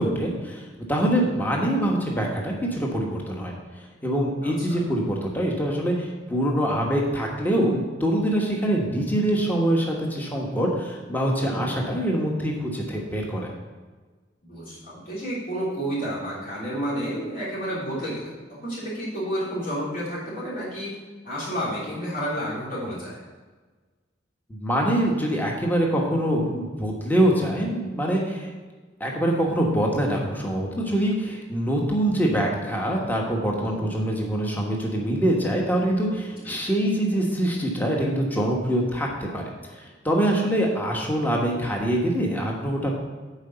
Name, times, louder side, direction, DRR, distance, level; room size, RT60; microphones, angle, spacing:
voice 1, 0.0-3.5 4.0-13.5 24.5-28.5 29.0-42.9, right 1 dB, 10° left, -1 dB, 1.2 m, -24 dB
voice 2, 1.1-1.4 4.4-4.9 11.4-11.7 14.4-20.9 21.2-23.2 33.5-33.9 36.4-36.5, equal, 50° left, -9 dB, 3.1 m, -31 dB
8.0 x 4.9 x 6.7 m, 1.4 s
head